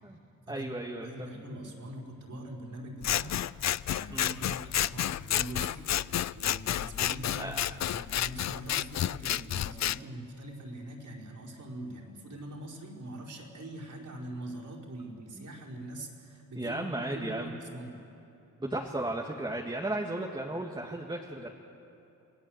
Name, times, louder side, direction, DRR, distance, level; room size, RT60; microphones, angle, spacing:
voice 1, 0.5-1.4 4.1-4.4 7.4-7.8 15.3-15.5 16.6-17.6 18.6-21.5, right 1 dB, 10° right, 1 dB, 1.9 m, -35 dB
voice 2, 1.0-5.8 6.3-18.0, right 1 dB, 55° right, -2 dB, 4.9 m, -43 dB
Scissors, 3.0-10.0, left 11 dB, 50° left, 0.4 m, -30 dB
28.0 x 17.5 x 7.9 m, 2.8 s
cardioid pair, 70°, 35 cm